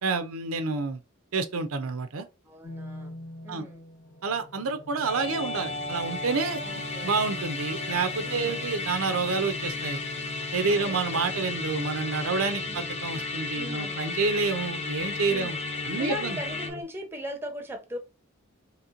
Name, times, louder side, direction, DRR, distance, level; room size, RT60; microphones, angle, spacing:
voice 1, 0.0-1.0 1.3-2.3 3.5-3.7 4.2-6.6 7.0-10.0 10.5-15.6 15.8-16.4, right 4 dB, 85° right, 0.6 m, -28 dB
voice 2, 2.4-3.2 3.4-3.8 6.6-7.1 8.2-8.6 10.7-11.0 12.7-12.8 13.5-14.1 15.3-15.6 16.0-18.0, equal, 10° right, 0.8 m, -39 dB
sound 1, 2.6-16.8, left 2 dB, 65° left, 0.8 m, -42 dB
Musical instrument, 5.0-16.7, left 3 dB, 30° left, 0.6 m, -34 dB
3.2 x 3.0 x 3.7 m
head